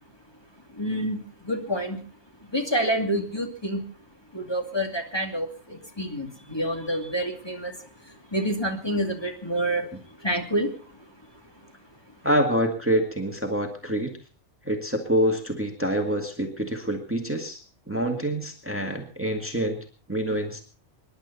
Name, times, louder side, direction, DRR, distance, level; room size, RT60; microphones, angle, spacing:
voice 1, 0.7-2.0 2.5-3.8 4.3-7.8 8.0-9.9 10.2-10.7, equal, 20° left, 2 dB, 2.5 m, -28 dB
voice 2, 12.2-14.1 14.7-17.6 17.9-19.8 20.1-20.6, equal, 10° right, 3 dB, 2.0 m, -26 dB
26.5 x 11.5 x 4.1 m, 0.38 s
omnidirectional pair, 1.3 m